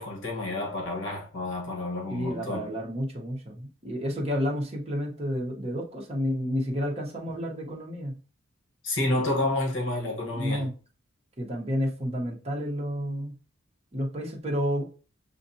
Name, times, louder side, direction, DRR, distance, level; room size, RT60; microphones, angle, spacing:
voice 1, 0.0-2.7 8.8-10.7, left 2 dB, 65° left, 1.2 m, -29 dB
voice 2, 2.1-8.2 10.3-10.7 11.4-13.4 13.9-14.8, equal, 30° right, 1.0 m, -30 dB
7.1 x 2.5 x 2.7 m
head